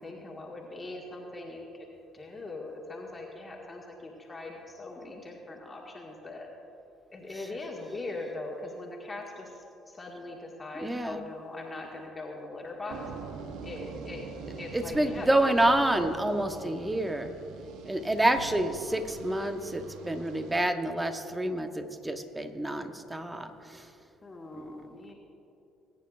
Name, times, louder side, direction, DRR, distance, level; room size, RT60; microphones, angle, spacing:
voice 1, 0.0-1.7 2.1-6.5 7.1-9.5 9.9-13.1 13.6-14.3 14.6-15.4 24.2-25.1, left 2 dB, 25° left, -1 dB, 1.8 m, -41 dB
voice 2, 10.7-11.2 14.7-17.3 17.8-23.9 24.6-24.7, right 1 dB, 15° right, 7 dB, 1.1 m, -28 dB
sound 1, 12.9-20.7, right 5 dB, 70° right, 0.9 m, -44 dB
22.0 x 9.5 x 2.5 m, 2.8 s
hypercardioid pair, 55°, 0 cm